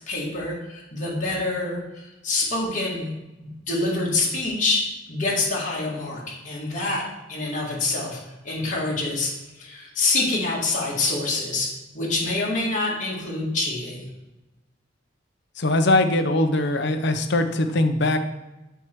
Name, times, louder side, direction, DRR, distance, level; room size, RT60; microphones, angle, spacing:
voice 1, 0.1-3.1 3.7-4.8 5.1-7.0 7.3-11.7 11.9-14.1, left 2 dB, 40° left, -5 dB, 2.1 m, -26 dB
voice 2, 15.6-18.2, left 2 dB, 65° left, 8 dB, 0.7 m, -21 dB
7.8 x 4.5 x 4.6 m, 1.0 s
head